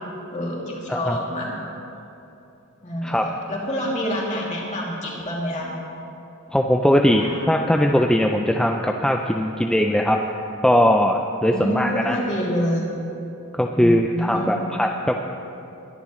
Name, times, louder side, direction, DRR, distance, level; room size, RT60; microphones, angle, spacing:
voice 1, 0.3-1.6 2.8-5.7 7.2-7.4 11.5-12.9 13.7-14.7, equal, 35° left, -4 dB, 2.7 m, -27 dB
voice 2, 6.5-10.2 10.6-12.2 13.5-15.1, equal, 5° left, 2 dB, 0.4 m, -20 dB
22.0 x 11.0 x 3.1 m, 2.8 s
head